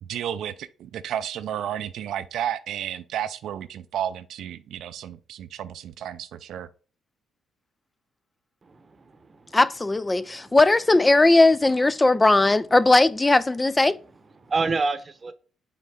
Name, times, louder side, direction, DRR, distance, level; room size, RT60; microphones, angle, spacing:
voice 1, 0.0-6.7, right 10 dB, 75° right, 0.4 m, -32 dB
voice 2, 8.6-9.6 10.1-10.6 14.4-15.3, right 4 dB, 30° right, 0.8 m, -29 dB
voice 3, 9.5-14.0, left 2 dB, 20° left, 0.3 m, -18 dB
5.7 x 4.0 x 4.9 m
cardioid pair, 90°, 0 cm